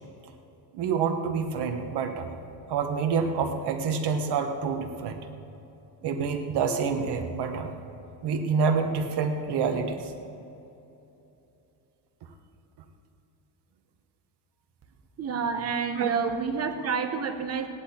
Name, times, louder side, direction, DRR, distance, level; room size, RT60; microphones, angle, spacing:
voice 1, 0.7-2.3 2.7-5.2 6.0-7.7 8.2-10.1 16.0-16.2, right 5 dB, 75° right, 5 dB, 1.4 m, -27 dB
voice 2, 15.2-17.7, right 5 dB, 35° right, 5 dB, 1.1 m, -29 dB
16.5 x 10.5 x 4.4 m, 2.9 s
cardioid pair, 155°, 40 cm